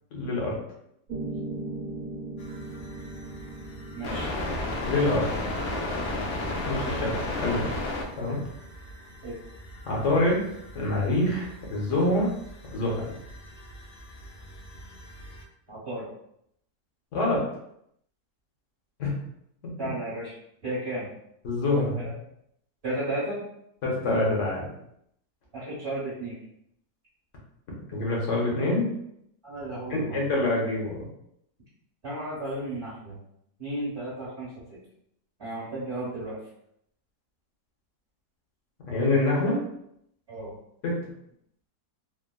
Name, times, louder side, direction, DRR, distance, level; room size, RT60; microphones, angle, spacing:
voice 1, 0.1-0.6 4.8-5.3 6.7-7.6 8.2-8.4 9.9-10.4 10.7-12.3 12.7-13.2 17.1-17.4 19.0-19.1 19.6-19.7 21.4-22.1 23.8-24.7 27.9-28.9 29.9-31.0 38.9-39.6 40.8-41.0, left 2 dB, 55° left, -3 dB, 1.1 m, -26 dB
Piano, 1.1-9.2, right 2 dB, 85° right, 1.2 m, -40 dB
sound 1, 2.4-15.4, left 1 dB, 70° left, 0.7 m, -35 dB
voice 2, 4.0-4.3 9.2-9.3 15.7-16.1 19.8-20.3 20.6-21.1 22.0-22.1 22.8-23.4 25.5-26.4 29.4-30.3 32.0-33.2 33.6-34.8 35.4-36.4 40.3-40.5, right 1 dB, 45° right, -10 dB, 1.3 m, -33 dB
3.5 x 2.1 x 2.2 m, 0.75 s
omnidirectional pair, 1.8 m